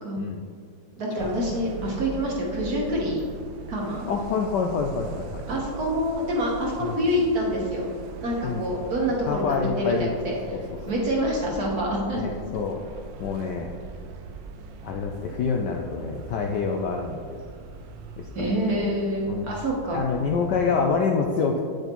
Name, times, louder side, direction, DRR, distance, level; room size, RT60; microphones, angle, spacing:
voice 1, 1.0-3.2 3.7-4.0 5.5-7.9 8.2-10.4 10.9-12.2 18.3-20.0, equal, 50° right, -2 dB, 1.5 m, -26 dB
sound 1, 1.2-20.9, right 5 dB, 70° right, 1.1 m, -41 dB
voice 2, 4.1-5.4 6.8-6.9 8.4-8.7 9.3-10.6 12.1-12.8 13.2-13.7 14.8-17.2 18.2-18.3 19.3-19.5 19.9-21.6, left 5 dB, 75° left, 2 dB, 1.0 m, -26 dB
8.7 x 7.9 x 3.0 m, 2.1 s
omnidirectional pair, 2.3 m